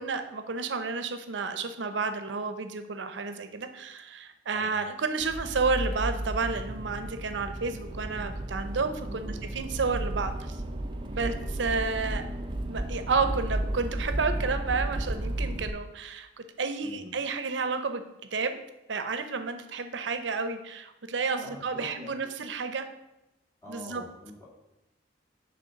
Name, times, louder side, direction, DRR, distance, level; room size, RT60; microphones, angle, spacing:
voice 1, 0.0-10.6 11.1-11.3 11.6-12.2 12.7-18.0 18.3-18.6 18.9-22.9 23.7-24.0, right 4 dB, 85° right, 9 dB, 0.6 m, -31 dB
voice 2, 4.5-4.8 9.1-9.4 11.1-11.4 16.8-17.2 21.4-22.3 23.6-24.5, left 1 dB, 15° left, -5 dB, 1.8 m, -46 dB
Accelerating revving vroom, 5.2-15.7, right 1 dB, 25° right, 0.5 m, -33 dB
6.5 x 3.4 x 5.7 m, 0.93 s
head